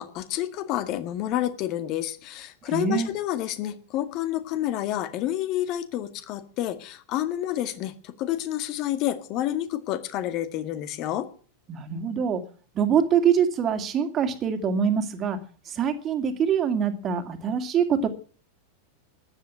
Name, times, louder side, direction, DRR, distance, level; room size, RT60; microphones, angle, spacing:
voice 1, 0.0-11.3, left 13 dB, 40° left, 10 dB, 1.9 m, -29 dB
voice 2, 2.7-3.1 11.7-12.4 12.7-15.4 15.7-18.1, right 7 dB, 30° right, 7 dB, 2.5 m, -24 dB
14.5 x 11.0 x 7.4 m, 0.41 s
figure-of-eight pair, 90°, 0 cm